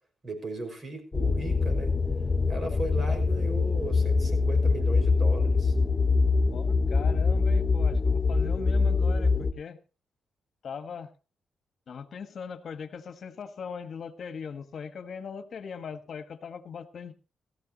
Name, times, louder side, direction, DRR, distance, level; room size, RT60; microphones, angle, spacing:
voice 1, 0.2-1.9 2.5-5.7, right 2 dB, 35° right, 5 dB, 5.6 m, -37 dB
sound 1, 1.1-9.5, left 4 dB, 25° left, 2.1 m, -24 dB
voice 2, 6.5-9.8 10.6-11.1 11.9-17.1, left 6 dB, 60° left, 9 dB, 1.5 m, -40 dB
17.5 x 14.5 x 3.0 m, 0.31 s
cardioid pair, 85°, 0 cm